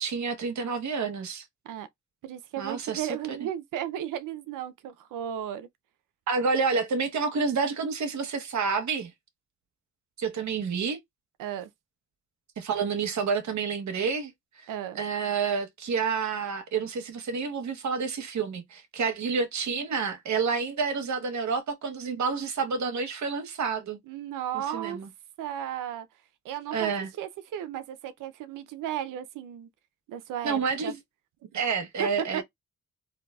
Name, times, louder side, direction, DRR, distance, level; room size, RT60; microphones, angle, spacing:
voice 1, 0.0-1.4 2.6-3.4 6.3-9.1 10.2-11.0 12.6-14.7 14.9-24.0 24.5-25.1 26.7-27.1 30.4-31.0 31.5-32.4, right 5 dB, 65° right, 0.9 m, -29 dB
voice 2, 2.2-5.7 11.4-11.7 14.7-15.0 24.1-25.0 25.4-26.1 26.4-26.9 27.2-29.7 30.1-30.9 32.0-32.4, right 10 dB, 90° right, 0.5 m, -34 dB
3.8 x 2.6 x 2.2 m
cardioid pair, 55°, 31 cm